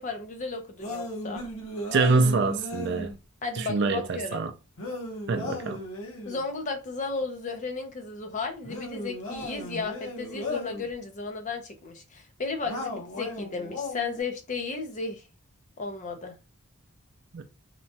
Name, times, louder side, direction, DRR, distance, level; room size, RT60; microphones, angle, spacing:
voice 1, 0.0-1.4 3.4-4.4 6.3-15.2 15.8-16.4, left 4 dB, 35° left, 0.5 m, -34 dB
sound 1, 0.8-3.2 4.8-6.4 8.6-10.9 12.7-14.2, left 1 dB, 70° left, 0.8 m, -36 dB
voice 2, 1.9-3.1 3.7-4.5 5.3-5.8 17.3-17.4, right 3 dB, 50° right, 0.4 m, -25 dB
2.8 x 2.2 x 2.7 m
head